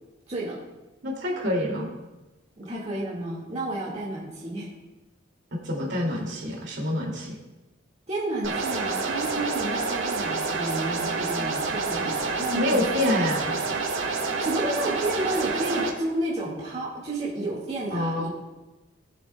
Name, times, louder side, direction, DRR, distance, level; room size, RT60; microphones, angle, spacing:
voice 1, 0.3-0.6 2.6-4.7 8.1-12.8 14.4-18.3, right 1 dB, 30° right, -6 dB, 1.8 m, -31 dB
voice 2, 1.0-1.9 5.5-7.4 12.5-13.6 17.9-18.3, left 1 dB, 60° right, -1 dB, 2.4 m, -27 dB
sound 1, 8.4-15.9, right 4 dB, 75° right, 1.4 m, -28 dB
19.5 x 7.3 x 2.2 m, 1.1 s
head